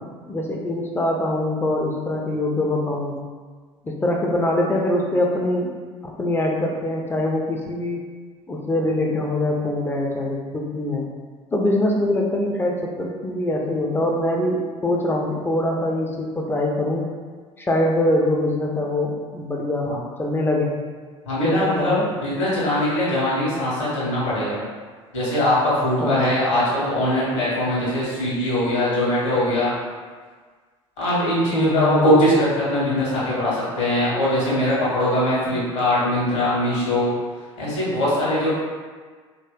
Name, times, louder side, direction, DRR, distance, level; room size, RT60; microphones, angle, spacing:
voice 1, 0.3-3.2 3.8-5.7 6.0-8.0 8.5-11.0 11.5-17.1 17.6-20.8 21.4-22.1 26.0-26.3 31.5-32.1, left 1 dB, 15° left, 0 dB, 0.4 m, -23 dB
voice 2, 21.2-21.9 22.2-24.6 25.1-29.7 31.0-37.1 37.6-38.5, left 1 dB, 70° left, -8 dB, 1.3 m, -21 dB
2.9 x 2.8 x 2.2 m, 1.5 s
figure-of-eight pair, 60°, 16 cm